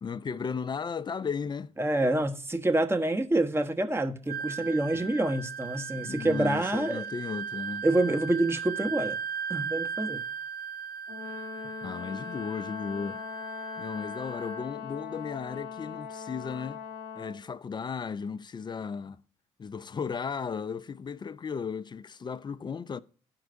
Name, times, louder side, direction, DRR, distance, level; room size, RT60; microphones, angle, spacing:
voice 1, 0.0-1.7 4.6-5.0 6.0-7.8 11.8-13.2 13.8-16.8 17.2-19.2 19.6-23.0, left 6 dB, 30° left, 0.5 m, -35 dB
voice 2, 1.8-7.0 7.8-9.2 9.5-10.2, right 1 dB, 15° right, 1.0 m, -27 dB
Wind instrument woodwind instrument, 4.3-14.7, right 6 dB, 60° right, 0.9 m, -37 dB
Brass instrument, 11.1-17.5, left 6 dB, 75° left, 1.0 m, -41 dB
13.5 x 4.5 x 2.6 m
hypercardioid pair, 45°, 16 cm